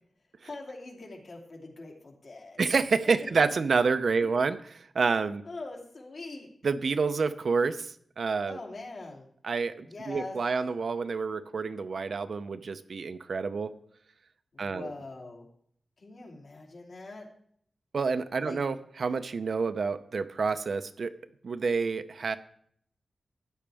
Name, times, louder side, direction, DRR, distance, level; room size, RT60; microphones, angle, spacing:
voice 1, 0.4-2.6 3.1-3.3 4.2-4.3 5.4-6.5 8.5-9.3 9.8-10.4 14.5-15.5 16.0-17.3 18.4-18.6, left 2 dB, 55° left, -1 dB, 2.8 m, -43 dB
voice 2, 2.6-5.4 6.6-8.6 9.4-13.7 14.6-14.9 17.9-21.1 21.4-22.4, right 4 dB, 60° right, 10 dB, 0.6 m, -28 dB
13.5 x 10.0 x 3.5 m, 0.64 s
wide cardioid pair, 160°, 0 cm